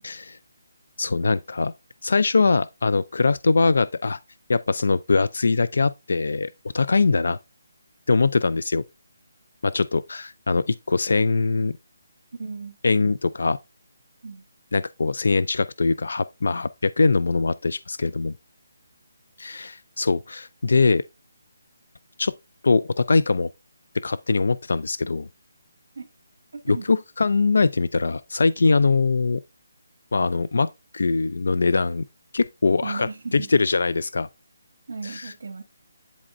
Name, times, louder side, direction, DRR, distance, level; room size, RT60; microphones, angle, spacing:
voice 1, 0.0-0.4 1.0-1.7 2.0-4.2 4.5-7.4 8.1-8.8 9.6-11.7 12.8-13.6 14.7-18.3 19.4-21.0 22.2-22.3 22.6-23.5 24.0-25.3 26.7-29.4 30.1-30.7 30.9-32.1 32.3-34.3 35.0-35.3, left 4 dB, 60° left, 0.3 m, -22 dB
voice 2, 12.3-12.8 14.2-14.4 26.0-26.1 26.5-26.8 32.8-33.5 34.9-35.6, right 4 dB, 55° right, 1.7 m, -35 dB
10.0 x 4.2 x 2.5 m
hypercardioid pair, 180°, 0 cm